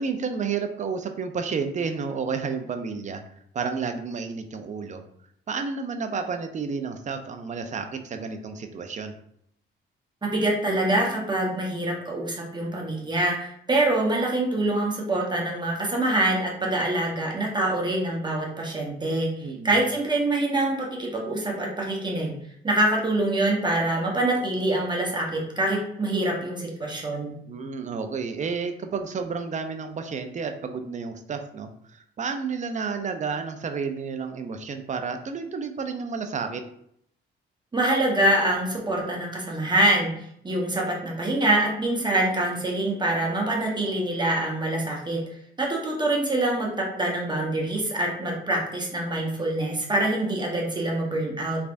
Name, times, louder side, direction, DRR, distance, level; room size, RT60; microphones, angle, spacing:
voice 1, 0.0-3.2 3.5-5.0 5.5-9.1 19.4-19.7 27.5-36.6, right 5 dB, 35° right, 6 dB, 0.5 m, -31 dB
voice 2, 10.2-22.3 22.6-27.3 37.7-40.1 40.4-45.2 45.6-46.7 47.0-51.6, right 1 dB, 20° right, -2 dB, 1.0 m, -25 dB
3.4 x 3.2 x 2.5 m, 0.70 s
cardioid pair, 90°, 20 cm